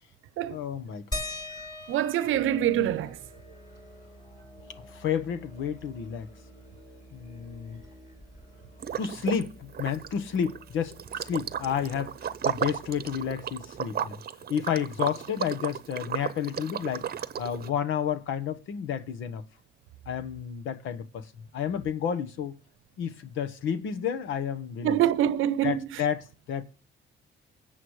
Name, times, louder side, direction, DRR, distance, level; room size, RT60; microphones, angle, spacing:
voice 1, 0.5-1.2 4.9-6.3 7.1-7.8 9.0-14.2 14.5-19.4 20.1-22.5 23.0-25.0 25.6-26.2 26.5-26.6, left 8 dB, 80° left, 1.2 m, -31 dB
sound 1, 1.1-6.2 6.6-6.7 7.0-8.8 10.0-10.1 10.9-11.0, left 2 dB, 20° left, 2.5 m, -42 dB
voice 2, 1.9-3.2 24.8-26.0, right 11 dB, 85° right, 0.8 m, -25 dB
Musical instrument, 2.3-13.9, right 1 dB, 45° left, 3.7 m, -52 dB
Liquid, 8.8-9.5 9.7-17.7, right 9 dB, 50° right, 0.8 m, -34 dB
21.0 x 7.8 x 3.2 m
cardioid pair, 90°, 20 cm